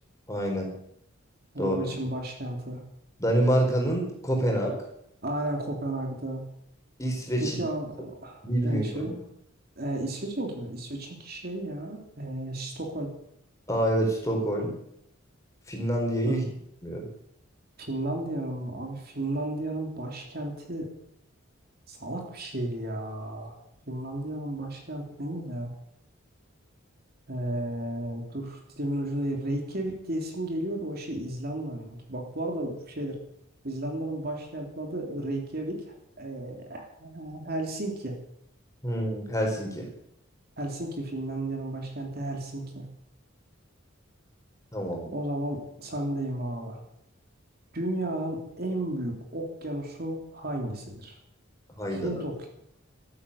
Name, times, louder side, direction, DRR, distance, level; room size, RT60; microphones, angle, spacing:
voice 1, 0.3-0.7 1.6-1.8 3.2-4.7 7.0-7.6 8.4-9.2 13.7-14.7 15.7-16.4 16.8-17.1 38.8-39.9 44.7-45.1 51.8-52.2, right 1 dB, 15° left, 1 dB, 4.3 m, -27 dB
voice 2, 1.5-2.8 5.2-6.4 7.4-9.1 9.8-13.1 16.3-16.4 17.8-20.9 21.9-23.6 23.9-25.7 27.3-33.2 33.6-38.2 40.6-42.9 45.1-46.8 47.7-51.2 51.9-52.5, right 1 dB, 50° right, 2 dB, 3.3 m, -33 dB
13.5 x 11.0 x 8.4 m, 0.74 s
head